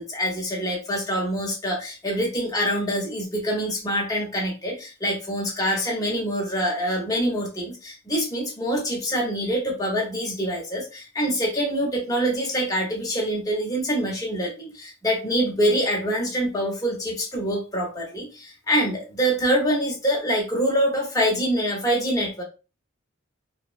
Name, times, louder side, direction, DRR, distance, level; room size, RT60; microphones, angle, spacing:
voice 1, 0.0-22.4, equal, 15° left, -1 dB, 0.7 m, -25 dB
2.7 x 2.0 x 2.4 m, 0.30 s
head